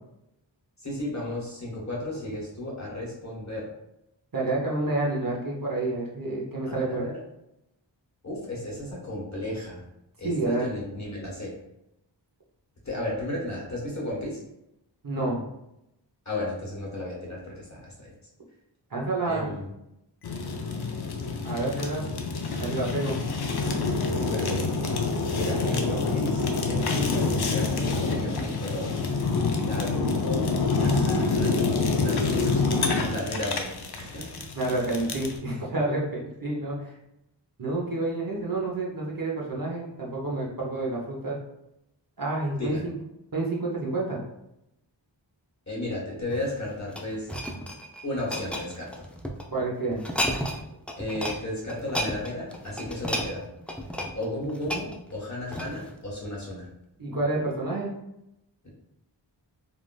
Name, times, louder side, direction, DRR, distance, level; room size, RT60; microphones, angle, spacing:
voice 1, 0.8-3.7 6.7-7.2 8.2-9.8 10.2-11.5 12.8-14.4 16.2-18.1 19.2-19.7 24.0-24.6 25.3-29.1 29.6-34.4 42.6-42.8 45.7-47.3 48.0-49.1 51.0-53.4 54.1-56.7 58.6-58.7, left 1 dB, 40° left, -4 dB, 1.0 m, -34 dB
voice 2, 4.3-7.0 10.2-10.7 15.0-15.4 18.9-19.5 21.4-22.1 22.6-23.2 34.6-36.9 37.6-41.4 42.2-43.0 43.3-44.2 49.5-50.0 57.0-57.9, right 2 dB, 50° right, -3 dB, 0.8 m, -29 dB
Fire, 20.2-35.4, left 3 dB, 60° left, 0.5 m, -27 dB
sound 1, 46.3-49.4 49.9-50.6 50.9-51.4 51.7-56.0 56.5-56.7, equal, 5° left, 0.3 m, -33 dB
3.3 x 2.4 x 2.2 m, 0.85 s
wide cardioid pair, 45°, 45 cm